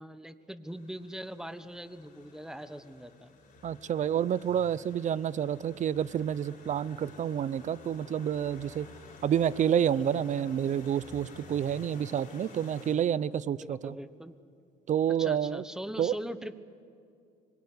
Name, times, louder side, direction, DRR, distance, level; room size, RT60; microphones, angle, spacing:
voice 1, 0.0-3.3 13.6-14.4 15.2-16.6, equal, 5° right, 12 dB, 1.2 m, -41 dB
sound 1, 0.7-12.9, left 3 dB, 50° left, 7.3 m, -51 dB
voice 2, 3.6-8.9 9.2-14.0 14.9-15.6 16.0-16.1, right 9 dB, 45° right, 20 dB, 0.7 m, -29 dB
25.5 x 22.5 x 9.7 m, 2.5 s
cardioid pair, 110°, 17 cm